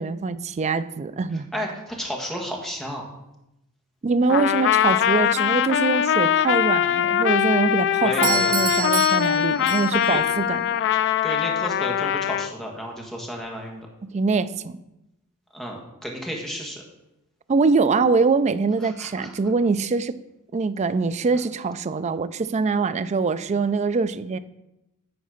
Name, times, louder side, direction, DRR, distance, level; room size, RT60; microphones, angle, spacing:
voice 1, 0.0-1.5 4.0-10.8 14.0-14.8 17.5-20.2 20.5-24.4, right 4 dB, 30° right, 12 dB, 0.3 m, -23 dB
voice 2, 1.5-3.1 8.0-8.5 10.1-10.2 11.2-13.9 15.5-16.8 18.8-19.3, equal, ahead, 0 dB, 1.5 m, -32 dB
Trumpet, 4.3-12.5, left 10 dB, 55° left, 0.3 m, -22 dB
Doorbell, 8.2-10.2, right 6 dB, 70° right, 1.6 m, -28 dB
9.2 x 4.2 x 6.4 m, 0.90 s
head